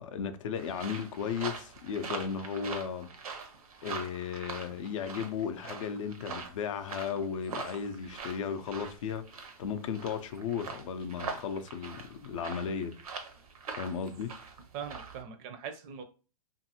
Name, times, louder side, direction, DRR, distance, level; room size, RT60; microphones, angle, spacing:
voice 1, 0.0-3.1 3.8-12.9 13.7-14.3, left 7 dB, 60° left, 0.5 m, -35 dB
sound 1, 0.6-15.2, right 5 dB, 80° right, 0.8 m, -43 dB
voice 2, 14.7-16.0, right 7 dB, 35° right, 0.5 m, -41 dB
2.7 x 2.5 x 2.7 m
hypercardioid pair, 120°, 19 cm